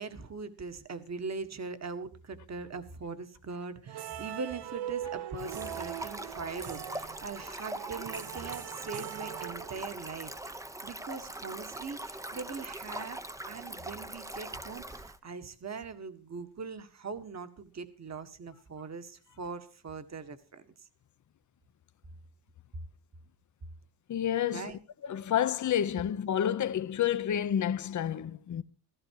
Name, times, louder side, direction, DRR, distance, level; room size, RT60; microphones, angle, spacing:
voice 1, 0.0-20.9 24.5-24.8, right 4 dB, 35° right, 1.8 m, -41 dB
sound 1, 3.9-10.1, right 11 dB, 60° right, 1.0 m, -41 dB
Stream, 5.4-15.2, right 1 dB, 5° right, 0.9 m, -42 dB
voice 2, 24.1-24.7 25.0-28.6, left 10 dB, 40° left, 0.9 m, -29 dB
15.0 x 15.0 x 4.8 m
cardioid pair, 105°, 43 cm